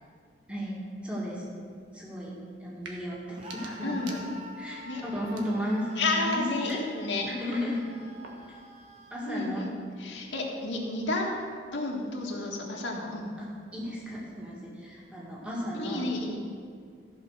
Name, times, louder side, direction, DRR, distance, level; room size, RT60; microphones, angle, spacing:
voice 1, 1.0-1.4 1.9-2.3 2.6-4.0 4.6-5.8 6.2-6.8 7.3-7.8 9.1-9.6 12.4-12.5 13.4-16.1, equal, 5° right, -5 dB, 1.9 m, -34 dB
sound 1, 2.7-3.0 3.3-4.7 5.2-5.9 6.3-8.7, right 3 dB, 85° right, 1.4 m, -49 dB
Screaming, 3.4-9.3, equal, 35° right, 1.1 m, -47 dB
voice 2, 3.8-4.3 4.8-5.0 6.0-7.3 9.2-9.7 10.0-11.4 11.7-13.3 15.7-16.4, left 2 dB, 80° left, -3 dB, 1.6 m, -31 dB
14.5 x 5.4 x 6.4 m, 2.1 s
head